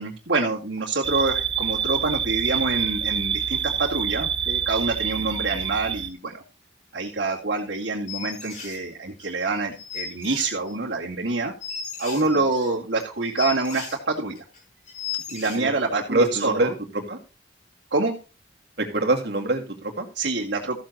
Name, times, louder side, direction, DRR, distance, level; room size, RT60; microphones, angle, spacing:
voice 1, 0.0-6.4 6.9-11.5 12.0-14.4 15.3-16.7 17.9-18.2 20.2-20.8, right 3 dB, 80° right, -5 dB, 2.2 m, -26 dB
sound 1, 1.0-6.1, right 8 dB, 30° right, 0.6 m, -27 dB
sound 2, 8.1-8.8 9.2-9.3 9.7-10.9 11.2-11.3 11.6-14.0 14.4-14.6 14.9-15.6, left 7 dB, 45° left, 5.1 m, -35 dB
voice 2, 16.1-17.2 18.8-20.1, right 2 dB, 65° right, 1 dB, 2.7 m, -25 dB
14.5 x 7.7 x 4.3 m, 0.32 s
head